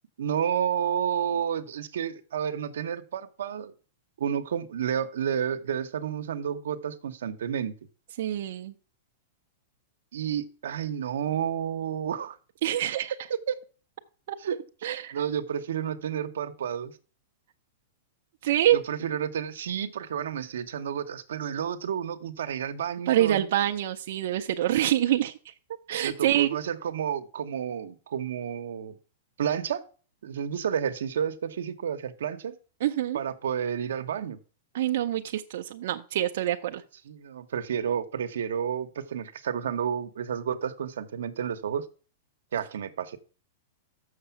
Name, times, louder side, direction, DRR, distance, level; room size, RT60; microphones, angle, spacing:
voice 1, 0.2-3.7 4.2-7.8 10.1-12.4 13.3-13.6 14.4-14.6 15.1-16.9 18.7-23.5 26.0-29.0 29.4-29.8 30.2-32.6 33.1-34.4 37.0-41.8 42.5-43.2, right 8 dB, 85° right, 9 dB, 0.9 m, -30 dB
voice 2, 8.2-8.7 12.6-13.1 14.3-14.4 14.8-15.2 18.4-19.1 23.1-25.5 25.9-26.5 32.8-33.2 34.7-36.8, right 12 dB, 60° right, 5 dB, 0.5 m, -26 dB
6.8 x 6.5 x 5.7 m, 0.38 s
supercardioid pair, 155°, 0 cm